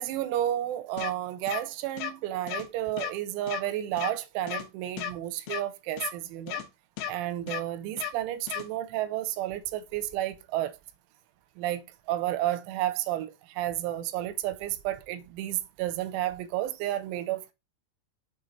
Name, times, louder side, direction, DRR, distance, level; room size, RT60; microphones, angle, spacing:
voice 1, 0.0-6.6 7.1-10.7 11.6-11.8 12.1-13.3 13.6-17.5, right 13 dB, 85° right, 3.0 m, -31 dB
sound 1, 1.0-1.1 1.5-1.6 2.0-2.1 2.5-2.6 3.0-3.1 3.5-3.6 4.0-4.1 4.5-4.6 5.0-5.1 5.5-5.6 6.0-6.1 6.5-6.6 7.0-7.1 7.5-7.6 8.0-8.1 8.5-8.6, left 10 dB, 90° left, 3.3 m, -33 dB
7.1 x 5.0 x 2.7 m
omnidirectional pair, 5.5 m